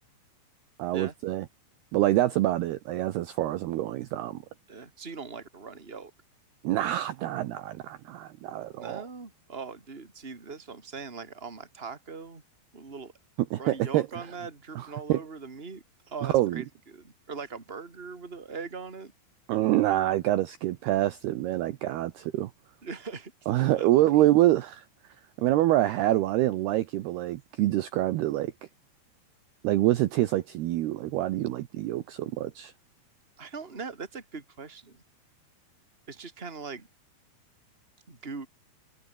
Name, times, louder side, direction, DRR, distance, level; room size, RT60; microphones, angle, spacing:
voice 1, 0.8-1.5 1.9-4.4 6.6-9.0 13.5-14.1 14.8-15.2 16.2-16.6 19.5-22.5 23.5-24.8 25.4-28.5 29.6-32.7, right 15 dB, 75° right, 2.6 m, -26 dB
voice 2, 4.7-6.1 8.7-12.4 12.7-13.1 13.6-19.1 22.8-24.3 33.4-35.0 36.1-36.9 38.1-38.5, right 5 dB, 15° right, 2.8 m, -41 dB
omnidirectional pair, 5.6 m